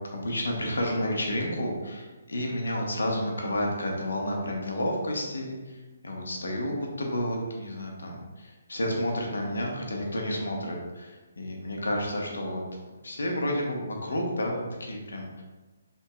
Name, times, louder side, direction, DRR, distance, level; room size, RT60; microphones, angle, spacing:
voice 1, 0.1-12.6 13.0-15.4, left 1 dB, 85° left, 0 dB, 1.1 m, -31 dB
5.7 x 3.6 x 2.4 m, 1.2 s
hypercardioid pair, 155°, 0 cm